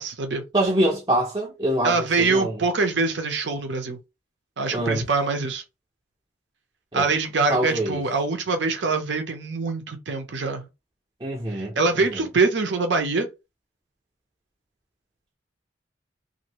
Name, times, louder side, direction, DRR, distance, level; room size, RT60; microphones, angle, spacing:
voice 1, 0.0-0.4 1.8-4.0 4.6-5.6 6.9-10.7 11.5-13.3, right 3 dB, 70° right, 0.7 m, -24 dB
voice 2, 0.5-2.5 4.7-5.0 6.9-7.0 7.5-8.0 11.2-11.7 12.1-12.2, right 1 dB, 25° right, 0.6 m, -24 dB
2.6 x 2.6 x 2.9 m
head